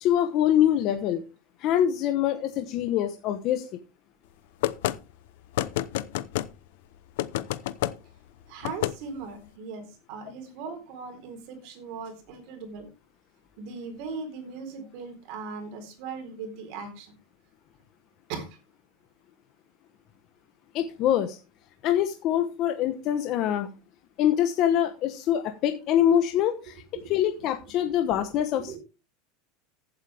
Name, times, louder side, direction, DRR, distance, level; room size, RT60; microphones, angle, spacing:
voice 1, 0.0-1.2 1.6-3.7 20.7-21.4 21.8-23.7 24.2-26.8 27.1-28.8, left 10 dB, 40° left, 7 dB, 1.1 m, -24 dB
sound 1, 4.6-5.0 5.5-6.5 7.2-7.9 8.6-8.9, left 15 dB, 70° left, 0.8 m, -28 dB
voice 2, 8.5-12.9 13.6-17.1 18.3-18.6 26.9-27.5 28.7-28.8, right 4 dB, 50° right, 6 dB, 4.1 m, -39 dB
15.0 x 8.1 x 3.5 m, 0.30 s
supercardioid pair, 165°, 0 cm